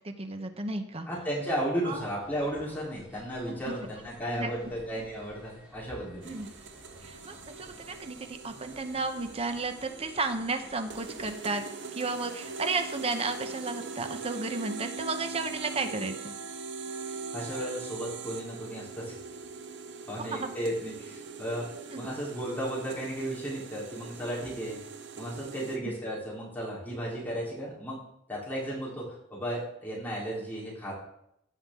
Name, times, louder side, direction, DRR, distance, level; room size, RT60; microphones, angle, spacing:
voice 1, 0.0-1.1 1.8-2.0 3.5-3.7 4.3-4.5 6.2-6.5 7.0-11.6 11.9-16.4 20.2-20.5 21.9-22.1 25.8-25.9, right 3 dB, 35° right, 7 dB, 0.9 m, -33 dB
voice 2, 1.1-6.4 17.0-19.2 20.1-21.7 22.0-24.8 25.2-28.0 28.3-31.0, right 1 dB, 10° left, -7 dB, 3.7 m, -34 dB
sound 1, 1.9-11.3, equal, 5° right, 2.5 m, -54 dB
sound 2, 6.2-25.8, right 4 dB, 70° right, 0.8 m, -42 dB
15.5 x 5.8 x 3.7 m, 0.77 s
head